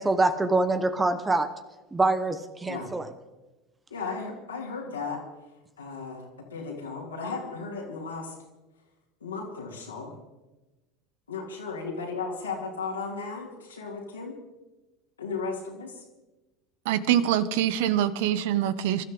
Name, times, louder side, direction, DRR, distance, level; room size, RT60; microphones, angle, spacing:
voice 1, 0.0-1.5 1.9-3.1, right 2 dB, 15° right, 11 dB, 1.1 m, -25 dB
voice 2, 3.9-5.2 5.8-8.3 9.2-10.1 11.3-14.4 15.2-16.0 17.2-17.3, left 4 dB, 80° left, -3 dB, 3.0 m, -35 dB
voice 3, 16.9-19.0, right 11 dB, 60° right, 15 dB, 0.9 m, -24 dB
26.0 x 13.0 x 3.9 m, 1.1 s
figure-of-eight pair, 75°, 0 cm